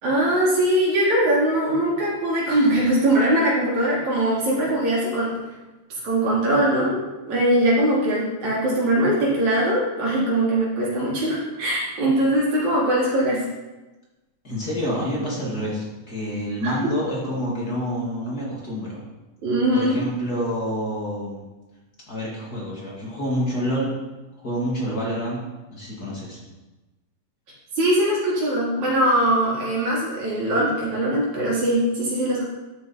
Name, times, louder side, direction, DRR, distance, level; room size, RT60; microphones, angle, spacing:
voice 1, 0.0-5.3 6.0-7.0 7.2-13.4 16.6-16.9 19.4-20.0 27.8-32.4, right 1 dB, 75° right, -7 dB, 5.3 m, -21 dB
voice 2, 14.4-19.0 19.7-21.4 22.1-24.0 24.4-25.4 25.7-26.4, equal, 30° left, -5 dB, 2.9 m, -28 dB
13.0 x 9.0 x 4.5 m, 1.1 s
omnidirectional pair, 3.3 m